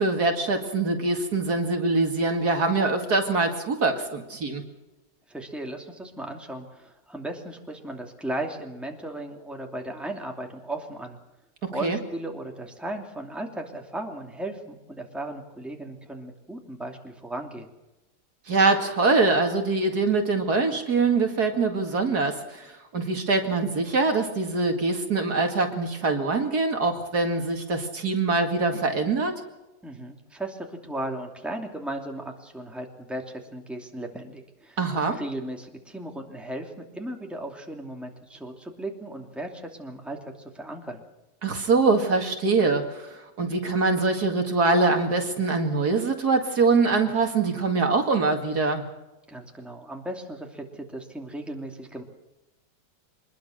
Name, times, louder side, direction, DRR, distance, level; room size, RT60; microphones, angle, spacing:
voice 1, 0.0-4.6 11.6-12.0 18.5-29.3 34.8-35.2 41.4-48.8, right 3 dB, 60° right, 4 dB, 2.6 m, -24 dB
voice 2, 5.3-11.2 11.7-17.7 29.8-34.8 35.1-41.0 49.3-52.0, right 1 dB, ahead, 2 dB, 2.7 m, -36 dB
25.0 x 21.0 x 6.5 m, 1.0 s
omnidirectional pair, 1.9 m